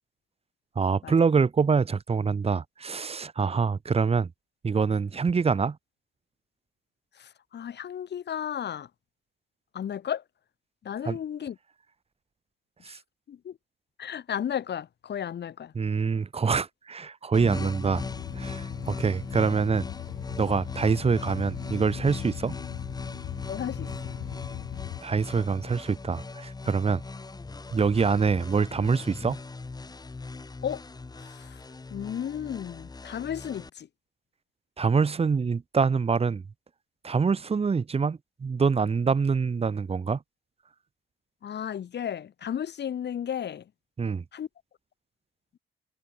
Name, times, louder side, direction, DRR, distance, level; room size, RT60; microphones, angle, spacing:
voice 1, 0.7-4.3 4.6-5.8 11.1-11.2 12.8-13.0 15.7-18.0 18.3-19.9 20.4-22.5 25.0-27.0 27.7-29.4 34.8-36.4 37.0-40.2 44.0-44.2, right 5 dB, 30° right, 1.2 m, -25 dB
voice 2, 7.2-8.9 9.7-10.2 10.8-11.6 12.9-13.0 13.3-13.6 14.0-15.7 23.5-23.9 30.6-30.8 31.2-31.6 31.9-33.9 41.4-43.7 44.3-44.5, left 9 dB, 60° left, 3.5 m, -34 dB
sound 1, 17.3-33.7, left 3 dB, 20° left, 1.3 m, -39 dB
sound 2, 17.9-25.0, left 16 dB, 90° left, 1.9 m, -39 dB
cardioid pair, 90°, 20 cm